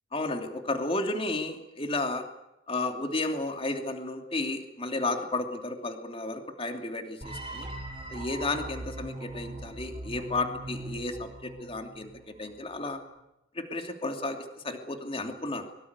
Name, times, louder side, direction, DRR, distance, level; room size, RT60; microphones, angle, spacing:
voice 1, 0.1-2.2 2.7-7.7 8.1-12.1 12.4-13.0 13.5-14.4 14.6-15.6, left 2 dB, 30° left, 5 dB, 3.0 m, -32 dB
sound 1, 7.2-12.3, right 2 dB, 25° right, 5.3 m, -41 dB
23.5 x 23.0 x 8.3 m, 0.88 s
head